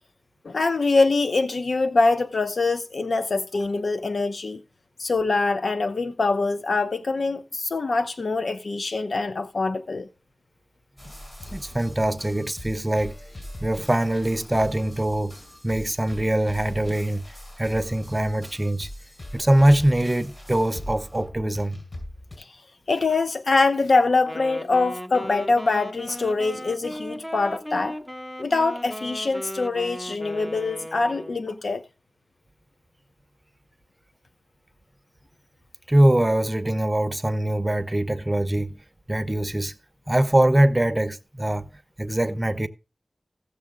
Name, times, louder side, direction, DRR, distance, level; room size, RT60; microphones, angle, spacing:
voice 1, 0.4-4.6 5.0-10.1 22.9-28.0 28.4-31.8, left 3 dB, 80° left, 0.5 m, -24 dB
sound 1, 11.0-22.4, left 1 dB, 45° left, 5.5 m, -41 dB
voice 2, 11.5-13.1 13.6-15.3 15.6-17.3 17.6-18.9 19.3-21.8 35.9-38.8 39.1-39.7 40.1-41.7 42.0-42.7, right 1 dB, 25° right, 0.7 m, -22 dB
Wind instrument woodwind instrument, 24.3-31.5, equal, 10° left, 0.7 m, -36 dB
15.5 x 6.8 x 3.7 m
wide cardioid pair, 55°, 0 cm